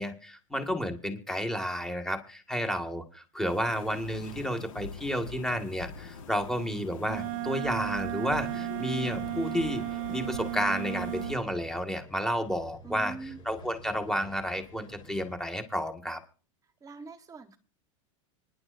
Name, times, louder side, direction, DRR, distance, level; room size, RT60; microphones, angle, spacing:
voice 1, 0.0-13.1 13.5-16.2, equal, 5° left, 1.8 m, -31 dB
sound 1, 3.5-11.3, left 5 dB, 80° left, 1.8 m, -43 dB
Wind instrument woodwind instrument, 7.0-11.4, right 24 dB, 55° right, 0.6 m, -34 dB
sound 2, 9.2-15.4, left 1 dB, 30° left, 6.4 m, -51 dB
voice 2, 12.8-13.4 16.8-17.6, right 4 dB, 20° right, 1.1 m, -43 dB
25.0 x 10.5 x 2.6 m
supercardioid pair, 130°, 17 cm